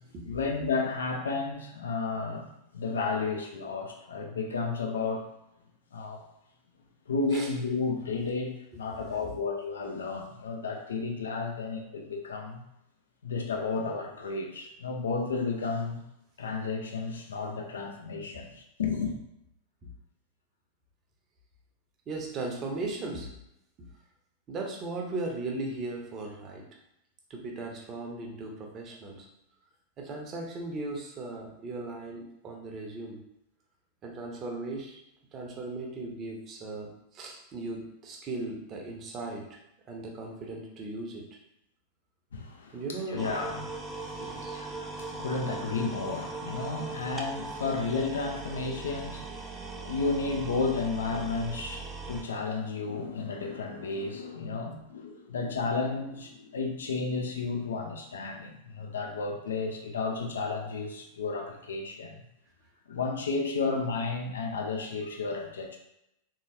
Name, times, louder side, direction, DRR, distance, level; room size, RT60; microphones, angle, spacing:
voice 1, 0.3-2.5 2.7-5.3 5.9-6.2 7.1-12.6 13.2-16.0 16.4-19.2 42.3-62.1 62.9-65.8, left 4 dB, 65° left, 3 dB, 0.6 m, -32 dB
voice 2, 22.1-23.3 24.5-26.6 27.3-29.3 30.0-33.2 34.0-35.0 35.3-39.4 39.9-41.2 42.7-43.2 44.2-44.6, right 2 dB, 30° right, 0 dB, 0.8 m, -37 dB
sound 1, 43.2-52.2, right 3 dB, 15° right, 0.4 m, -39 dB
3.7 x 2.9 x 2.6 m, 0.81 s
figure-of-eight pair, 90°, 0 cm